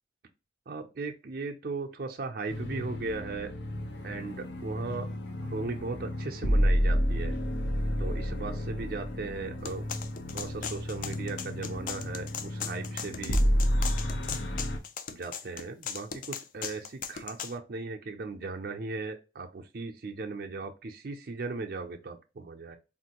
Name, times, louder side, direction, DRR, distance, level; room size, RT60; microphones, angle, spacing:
voice 1, 0.7-3.5 4.0-5.1 5.4-7.4 8.0-9.8 10.3-13.4 15.1-22.8, right 3 dB, 55° right, 3 dB, 0.4 m, -37 dB
sound 1, 2.5-14.8, equal, 85° left, 0.8 m, -30 dB
sound 2, 9.7-17.5, left 7 dB, 45° left, 0.3 m, -38 dB
3.6 x 2.5 x 2.8 m, 0.29 s
head